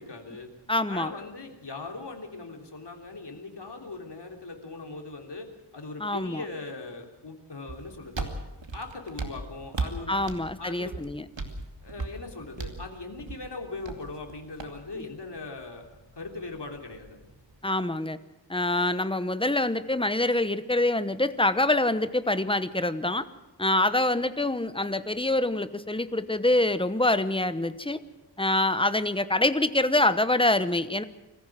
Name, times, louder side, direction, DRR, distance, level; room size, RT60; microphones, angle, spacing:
voice 1, 0.0-0.5 0.9-8.3 8.7-10.2 10.6-11.0 11.8-15.8 16.1-17.2, left 3 dB, 65° left, 2 dB, 3.4 m, -40 dB
voice 2, 0.7-1.1 6.0-6.4 10.1-11.2 17.6-18.2 18.5-23.2 23.6-28.0 28.4-31.0, left 2 dB, 10° left, 12 dB, 1.0 m, -25 dB
sound 1, 7.7-17.6, right 3 dB, 75° right, 2.6 m, -39 dB
24.0 x 15.0 x 7.6 m, 1.0 s
wide cardioid pair, 85°, 45 cm